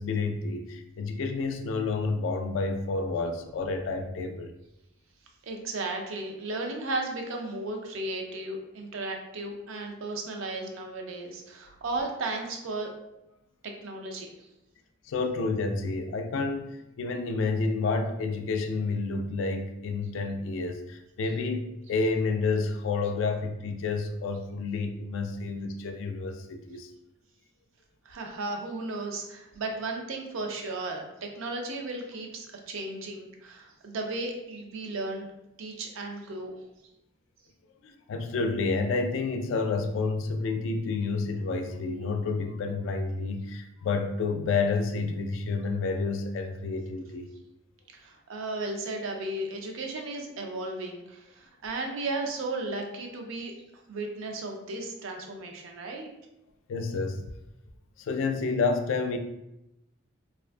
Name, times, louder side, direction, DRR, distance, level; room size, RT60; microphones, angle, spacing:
voice 1, 0.0-4.5 15.1-16.7 17.0-26.9 37.8-47.3 56.7-57.2 58.0-59.2, left 4 dB, 75° left, 5 dB, 0.3 m, -29 dB
voice 2, 5.4-12.9 13.6-14.5 28.1-35.3 35.6-36.6 47.9-53.5 53.9-56.1, right 2 dB, 80° right, 3 dB, 0.4 m, -35 dB
2.4 x 2.2 x 2.4 m, 0.88 s
head